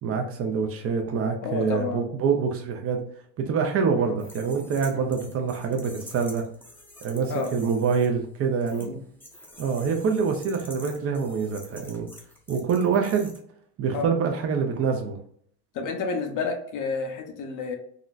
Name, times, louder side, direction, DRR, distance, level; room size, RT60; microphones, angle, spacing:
voice 1, 0.0-3.0 3.4-6.5 7.0-8.9 9.6-12.1 12.5-13.3 13.8-15.2, right 5 dB, 35° right, 3 dB, 0.4 m, -25 dB
voice 2, 1.4-2.0 4.0-4.1 4.9-5.1 7.3-7.5 8.8-9.0 13.9-14.1 15.7-17.8, left 4 dB, 50° left, 4 dB, 0.7 m, -30 dB
sound 1, 4.2-8.1 8.6-8.9 9.2-13.4, left 1 dB, 5° left, 0.6 m, -47 dB
3.7 x 2.0 x 2.3 m, 0.63 s
cardioid pair, 125°, 40 cm